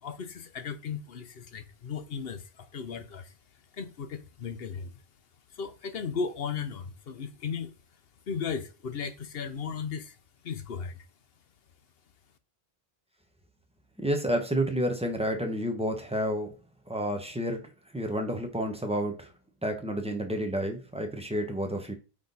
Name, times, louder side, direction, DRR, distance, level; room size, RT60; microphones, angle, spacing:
voice 1, 0.0-3.3 3.7-5.0 5.5-7.7 8.3-10.2 10.4-11.1, left 6 dB, 70° left, 1.0 m, -36 dB
voice 2, 14.0-16.5 16.9-17.6 17.9-19.3 19.6-21.9, equal, 5° right, 1.2 m, -30 dB
8.6 x 3.6 x 4.1 m
omnidirectional pair, 1.0 m